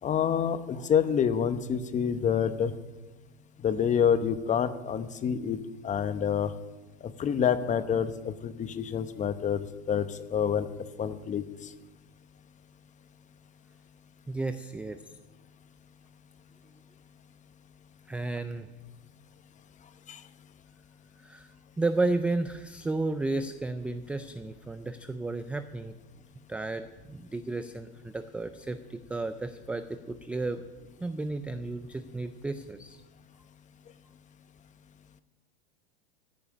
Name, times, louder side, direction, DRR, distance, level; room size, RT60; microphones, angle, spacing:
voice 1, 0.0-2.7 3.6-6.5 7.0-10.7 11.0-11.4 20.1-20.2, left 8 dB, 25° left, 12 dB, 0.9 m, -27 dB
voice 2, 14.3-15.0 18.1-18.7 21.2-26.0 26.5-30.6 31.0-33.0, right 2 dB, 5° right, 10 dB, 0.3 m, -33 dB
14.5 x 6.9 x 9.8 m, 1.2 s
hypercardioid pair, 120°, 32 cm